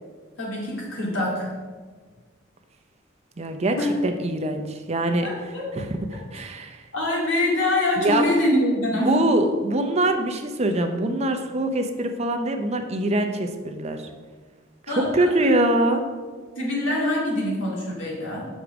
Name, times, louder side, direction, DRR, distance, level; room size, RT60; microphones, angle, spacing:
voice 1, 0.4-1.5 3.8-3.9 5.2-5.7 6.3-6.4 6.9-9.2 14.9-15.1 16.6-18.5, left 1 dB, 75° left, -3 dB, 2.3 m, -24 dB
voice 2, 3.4-5.3 5.7-6.8 8.0-8.3 8.9-14.1 14.9-16.0, right 1 dB, 35° right, 6 dB, 0.6 m, -24 dB
6.2 x 5.1 x 6.0 m, 1.5 s
head